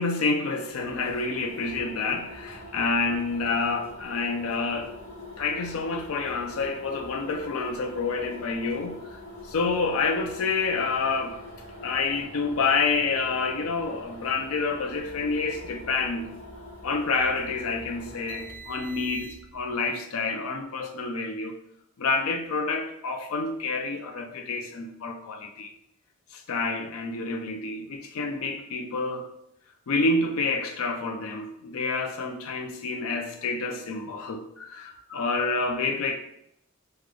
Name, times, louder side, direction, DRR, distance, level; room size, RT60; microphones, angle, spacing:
voice 1, 0.0-4.9 5.4-9.0 9.5-11.4 11.8-16.3 16.8-21.6 22.0-25.7 26.3-29.3 29.9-36.2, left 4 dB, 85° left, 0.4 m, -28 dB
sound 1, 0.6-19.6, left 1 dB, 70° left, 1.1 m, -43 dB
3.6 x 2.2 x 3.2 m
head